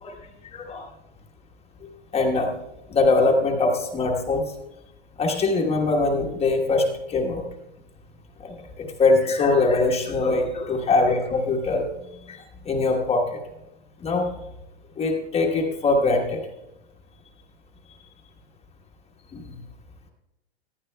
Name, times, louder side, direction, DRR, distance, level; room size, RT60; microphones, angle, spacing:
voice 1, 0.5-0.9 1.8-2.5 2.9-4.4 5.2-7.4 8.4-11.8 12.3-12.4 12.6-13.4 14.0-14.3 15.0-16.4 19.3-19.5, left 3 dB, 20° left, 2 dB, 1.1 m, -22 dB
18.0 x 11.5 x 2.2 m, 0.95 s
hypercardioid pair, 130°, 34 cm